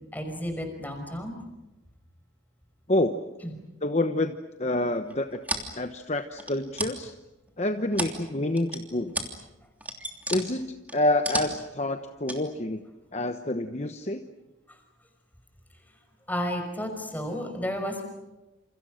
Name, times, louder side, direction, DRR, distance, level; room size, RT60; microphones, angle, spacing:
voice 1, 0.1-1.4 3.4-3.6 16.3-18.0, equal, 10° left, 5 dB, 5.5 m, -32 dB
voice 2, 2.9-3.2 3.8-4.3 4.6-5.4 5.8-7.1 7.6-9.1 10.3-12.8 13.1-14.2, left 1 dB, 35° left, 7 dB, 1.1 m, -27 dB
sound 1, 5.1-5.7 6.4-6.9 7.5-8.2 8.6-8.8 9.1-9.3 9.6-10.4 10.9-11.7 12.3-12.4, right 1 dB, 10° right, 3.1 m, -32 dB
29.0 x 28.5 x 6.5 m, 1.0 s
head